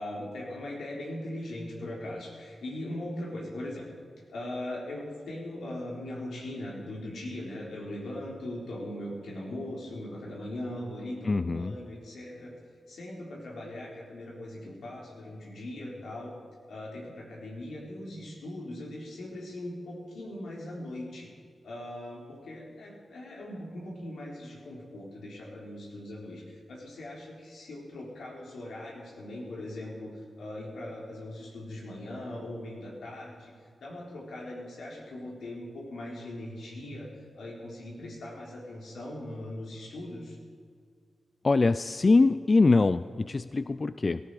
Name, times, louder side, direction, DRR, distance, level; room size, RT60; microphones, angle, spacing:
voice 1, 0.0-3.8 4.3-12.5 12.9-16.4 16.7-21.3 21.6-30.1 30.4-33.5 33.8-37.1 37.4-40.4, left 1 dB, 85° left, -3 dB, 4.0 m, -40 dB
voice 2, 11.3-11.7 41.4-44.2, left 3 dB, 45° left, 14 dB, 0.4 m, -23 dB
17.0 x 15.0 x 4.9 m, 2.2 s
cardioid pair, 55°, 0 cm